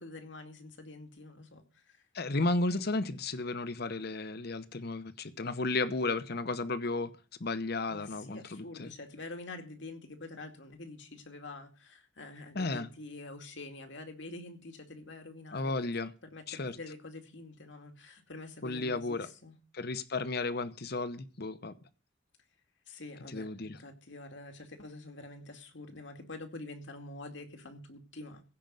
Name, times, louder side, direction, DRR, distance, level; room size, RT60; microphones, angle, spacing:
voice 1, 0.0-2.0 7.9-15.9 16.2-19.6 22.9-28.4, left 2 dB, 75° left, 2.3 m, -46 dB
voice 2, 2.1-7.1 7.4-8.9 12.5-12.9 15.5-16.1 16.5-16.8 18.6-19.3 19.7-21.7 23.3-23.8, left 2 dB, 60° left, 1.0 m, -33 dB
16.0 x 5.3 x 9.1 m
head